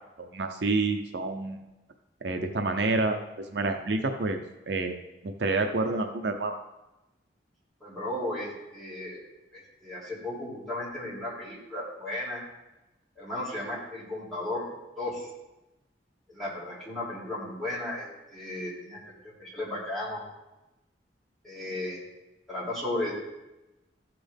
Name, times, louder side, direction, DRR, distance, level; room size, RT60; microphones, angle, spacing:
voice 1, 0.2-1.6 2.2-3.2 3.5-4.4 4.7-4.9 5.2-6.6, right 3 dB, 70° right, 5 dB, 0.6 m, -28 dB
voice 2, 7.8-9.2 9.5-12.4 13.2-14.7 15.0-15.3 16.3-19.0 19.4-20.2 21.4-22.0 22.5-23.1, left 1 dB, ahead, -9 dB, 3.2 m, -35 dB
14.0 x 6.0 x 3.5 m, 1.0 s
head